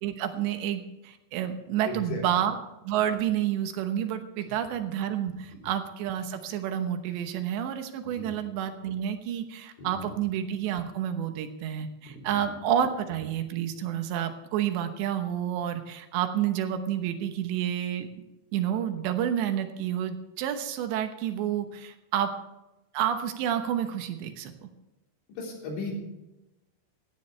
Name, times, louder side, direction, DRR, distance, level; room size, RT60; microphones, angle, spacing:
voice 1, 0.0-2.6 2.8-18.2 18.5-22.3 22.9-24.7, right 10 dB, 80° right, 7 dB, 3.3 m, -29 dB
voice 2, 1.9-2.2 5.5-5.6 8.0-8.3 9.8-9.9 12.1-12.4 25.3-25.9, left 3 dB, 80° left, -2 dB, 6.0 m, -37 dB
16.5 x 15.5 x 3.3 m, 0.97 s
omnidirectional pair, 5.2 m